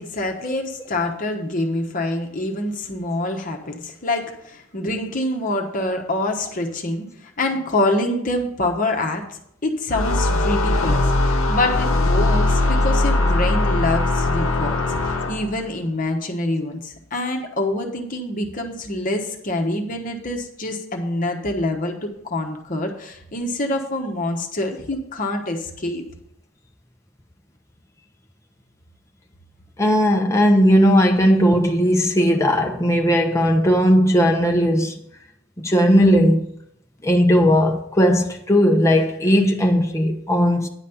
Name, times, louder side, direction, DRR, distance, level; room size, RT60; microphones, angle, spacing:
voice 1, 0.0-26.0, left 1 dB, 40° left, 1.2 m, -26 dB
sound 1, 9.9-15.6, left 2 dB, 85° left, 0.9 m, -20 dB
voice 2, 29.8-35.0 35.6-36.5 37.0-40.7, equal, 15° left, 0.9 m, -17 dB
10.0 x 4.2 x 7.0 m
head